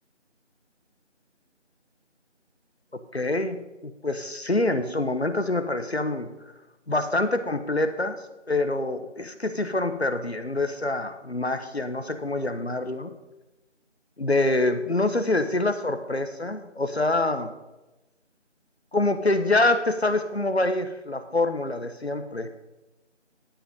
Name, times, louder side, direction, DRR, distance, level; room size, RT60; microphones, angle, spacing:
voice 1, 3.1-6.3 6.9-8.2 8.5-13.1 14.2-17.5 18.9-22.5, left 2 dB, 60° left, 9 dB, 1.1 m, -26 dB
12.0 x 7.2 x 5.4 m, 1.0 s
figure-of-eight pair, 175°, 36 cm